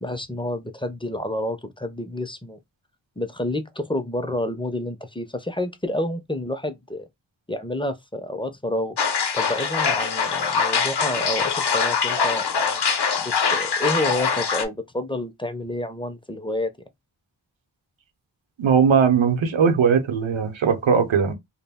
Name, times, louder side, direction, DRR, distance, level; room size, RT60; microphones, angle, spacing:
voice 1, 0.0-2.6 3.2-7.1 7.5-9.0 9.3-12.8 13.1-16.7, left 1 dB, 10° left, 0.4 m, -29 dB
sound 1, 9.0-14.7, left 6 dB, 60° left, 0.6 m, -23 dB
voice 2, 18.6-21.3, right 6 dB, 75° right, 0.7 m, -19 dB
2.2 x 2.0 x 3.4 m
wide cardioid pair, 45°, 46 cm